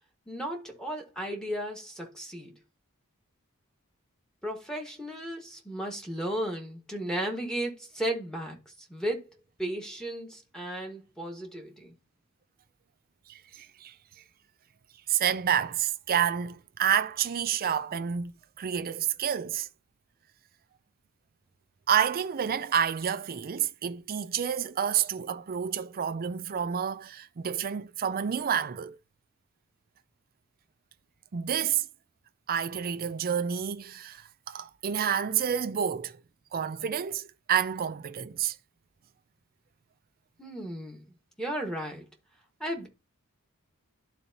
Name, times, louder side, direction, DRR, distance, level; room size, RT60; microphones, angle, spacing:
voice 1, 0.3-2.5 4.4-11.9 40.4-42.1 42.6-42.9, right 1 dB, 5° left, 1.4 m, -35 dB
voice 2, 13.3-13.9 15.1-18.3 18.6-19.7 21.9-29.0 31.3-31.9 32.5-36.2 36.5-38.5, right 8 dB, 45° right, 0.4 m, -29 dB
12.0 x 4.1 x 2.8 m
head